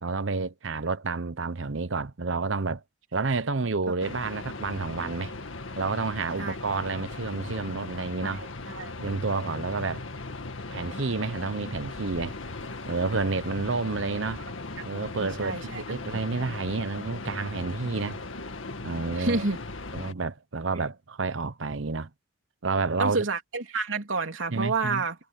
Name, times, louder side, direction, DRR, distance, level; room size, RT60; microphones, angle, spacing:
voice 1, 0.0-2.8 3.1-5.3 5.8-8.5 9.0-10.0 10.7-12.4 12.9-14.4 14.8-18.2 18.8-19.4 19.9-22.1 22.6-23.2 24.5-25.0, right 4 dB, 70° right, 0.9 m, -30 dB
sound 1, 4.0-20.1, left 3 dB, 85° left, 1.9 m, -38 dB
voice 2, 8.2-8.9 14.8-14.9 15.2-15.8 16.4-16.5 19.2-19.6 23.0-25.2, right 3 dB, 90° right, 3.2 m, -30 dB
head